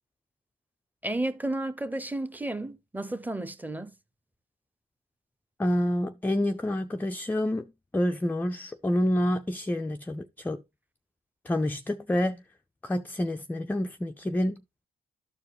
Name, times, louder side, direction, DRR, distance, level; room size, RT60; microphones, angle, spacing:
voice 1, 1.0-4.0, right 1 dB, 10° right, 0.9 m, -32 dB
voice 2, 5.6-7.6 7.9-10.6 11.5-12.4 12.8-14.6, left 1 dB, 10° left, 0.5 m, -28 dB
13.0 x 4.7 x 3.0 m
cardioid pair, 90°, 20 cm